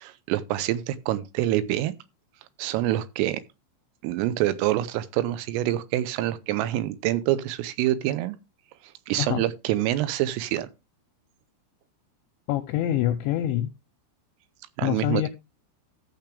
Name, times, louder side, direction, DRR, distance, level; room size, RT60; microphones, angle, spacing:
voice 1, 0.0-1.9 2.6-3.4 4.0-8.4 9.1-10.7 14.8-15.3, right 14 dB, 85° right, 3.4 m, -26 dB
voice 2, 12.5-13.7 14.8-15.3, left 13 dB, 80° left, 2.7 m, -25 dB
14.0 x 6.8 x 3.3 m
omnidirectional pair, 5.9 m